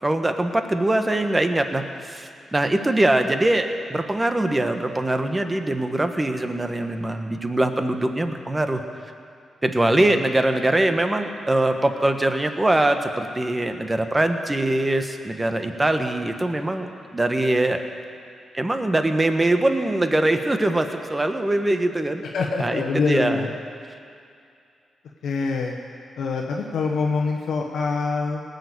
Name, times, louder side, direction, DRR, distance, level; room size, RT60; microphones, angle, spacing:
voice 1, 0.0-8.8 9.6-17.8 18.5-22.2 22.6-23.4, right 1 dB, 20° right, 6 dB, 1.3 m, -22 dB
voice 2, 22.3-23.5 25.2-25.7 26.2-28.4, left 4 dB, 80° left, 0 dB, 1.1 m, -25 dB
18.5 x 6.8 x 8.4 m, 2.4 s
cardioid pair, 55°, 0 cm